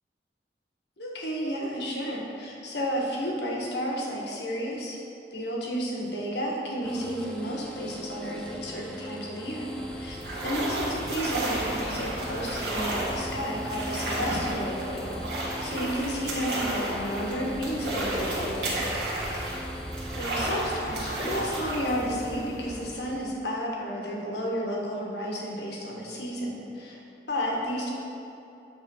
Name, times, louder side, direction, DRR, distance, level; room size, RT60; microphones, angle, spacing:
voice 1, 1.0-5.0 5.3-10.2 10.4-18.9 20.2-27.0 27.3-27.9, equal, 70° left, -2 dB, 1.2 m, -32 dB
sound 1, 6.8-20.2, equal, 5° left, 0.4 m, -40 dB
sound 2, 9.5-23.3, right 1 dB, 70° right, 1.5 m, -32 dB
8.1 x 3.3 x 5.4 m, 2.8 s
head